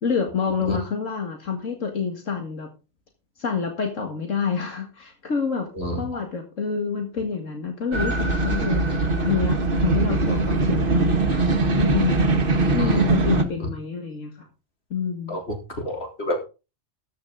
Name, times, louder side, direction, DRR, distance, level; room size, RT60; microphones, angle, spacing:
voice 1, 0.0-2.7 3.4-5.7 6.0-12.3 12.7-14.5 14.9-15.4, left 6 dB, 85° left, 3 dB, 2.3 m, -28 dB
sound 1, 7.9-13.4, right 3 dB, 45° right, 1.6 m, -21 dB
voice 2, 15.3-16.4, left 1 dB, 55° left, 3 dB, 3.5 m, -29 dB
13.5 x 9.4 x 3.9 m, 0.31 s
omnidirectional pair, 1.3 m